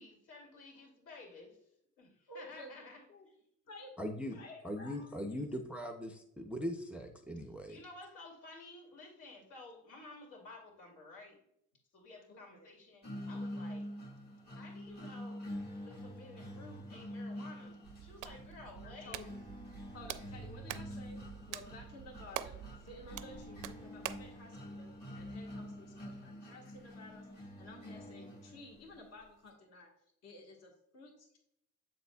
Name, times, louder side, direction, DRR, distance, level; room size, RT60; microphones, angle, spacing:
voice 1, 0.0-1.6 2.0-3.3 7.7-11.4 11.9-13.9 14.5-15.5 15.9-19.2, left 2 dB, 75° left, 0 dB, 2.6 m, -53 dB
voice 2, 2.3-3.3 3.7-5.4 12.3-12.7 18.4-19.5 19.9-29.9 30.2-31.4, left 2 dB, 55° left, 1 dB, 1.4 m, -54 dB
voice 3, 4.0-4.4 4.6-7.8, equal, 5° right, 4 dB, 0.4 m, -40 dB
sound 1, 13.0-29.0, equal, 30° left, 1.5 m, -46 dB
Hands, 17.8-24.3, right 12 dB, 80° right, 0.5 m, -46 dB
7.9 x 6.7 x 2.2 m, 0.74 s
cardioid pair, 160°, 31 cm